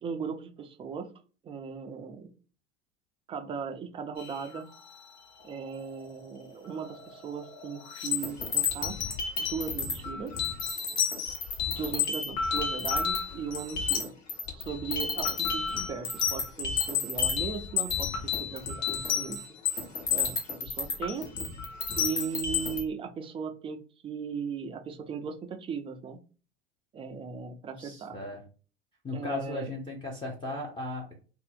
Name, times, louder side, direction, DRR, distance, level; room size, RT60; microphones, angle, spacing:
voice 1, 0.0-1.1 1.4-2.3 3.3-4.7 5.4-9.0 9.4-10.3 11.7-14.1 14.5-19.4 20.1-21.3 21.9-26.2 26.9-28.2 29.1-29.7, right 6 dB, 15° right, 6 dB, 0.3 m, -37 dB
sound 1, 4.2-4.7 6.8-7.1 7.4-22.8, left 6 dB, 50° left, 1.1 m, -31 dB
voice 2, 27.8-28.4 29.0-31.2, left 2 dB, 15° left, -1 dB, 0.7 m, -36 dB
2.6 x 2.0 x 3.9 m, 0.36 s
hypercardioid pair, 85°, 36 cm